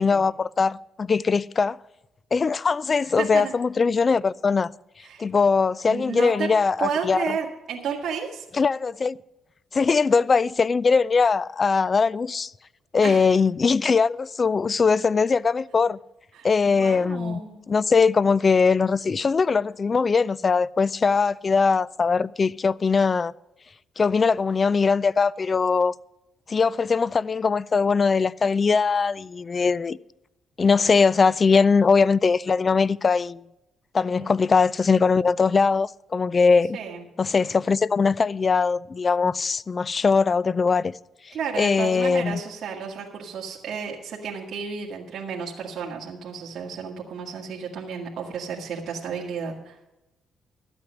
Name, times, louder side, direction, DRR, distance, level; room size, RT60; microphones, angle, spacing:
voice 1, 0.0-1.8 2.3-4.7 5.2-7.2 8.6-9.2 9.7-12.5 12.9-16.0 16.4-17.4 17.7-23.3 24.0-25.9 26.5-30.0 30.6-33.4 33.9-36.8 37.2-40.9 41.6-42.4, left 5 dB, 35° left, 0.3 m, -21 dB
voice 2, 3.0-3.5 5.0-5.3 5.9-6.5 6.8-8.5 13.0-13.2 16.3-17.6 34.2-34.3 36.7-37.0 41.3-49.9, right 6 dB, 60° right, 1.8 m, -32 dB
13.0 x 8.5 x 6.2 m
cardioid pair, 90°, 0 cm